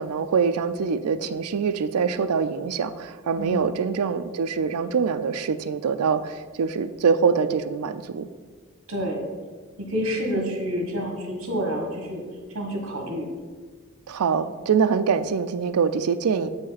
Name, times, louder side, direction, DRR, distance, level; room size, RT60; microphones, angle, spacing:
voice 1, 0.0-8.3 10.3-10.6 14.1-16.5, right 6 dB, 85° right, 12 dB, 0.4 m, -24 dB
voice 2, 3.4-3.7 8.9-9.3 9.8-12.2 12.5-13.3, equal, 65° right, 1 dB, 1.4 m, -28 dB
8.1 x 5.3 x 4.1 m, 1.5 s
head